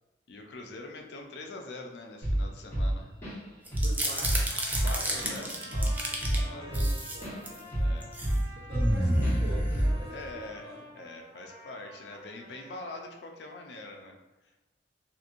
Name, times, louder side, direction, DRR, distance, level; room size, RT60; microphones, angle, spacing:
voice 1, 0.3-3.1 4.8-6.7 7.8-8.6 10.1-14.2, left 2 dB, 65° left, 2 dB, 0.4 m, -44 dB
Drum kit / Drum, 2.2-2.5 2.7-3.5 3.7-4.0 4.2-7.4 7.7-9.0 9.2-9.4 9.7-10.1, right 1 dB, 15° left, 1.3 m, -28 dB
sound 1, 3.7-6.4 6.7-7.6 8.0-8.3 8.7-10.3, right 1 dB, 10° right, 0.3 m, -30 dB
voice 2, 3.8-4.5 4.8-5.5 6.3-7.8 8.5-10.8, right 1 dB, 60° right, -2 dB, 0.7 m, -45 dB
Trumpet, 4.0-13.0, equal, 30° right, 1.0 m, -49 dB
2.9 x 2.6 x 2.5 m, 1.1 s
head